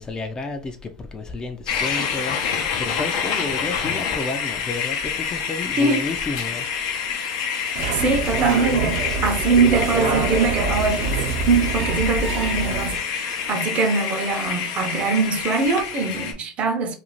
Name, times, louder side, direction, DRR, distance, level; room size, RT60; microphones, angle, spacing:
voice 1, 0.0-6.7, left 3 dB, 25° left, 0.4 m, -31 dB
sound 1, 1.7-16.3, left 7 dB, 75° left, 0.6 m, -27 dB
sound 2, 7.7-13.0, right 4 dB, 75° right, 0.8 m, -25 dB
voice 2, 7.9-17.0, right 4 dB, 45° right, 0.7 m, -22 dB
2.5 x 2.3 x 3.0 m
supercardioid pair, 100°, 3 cm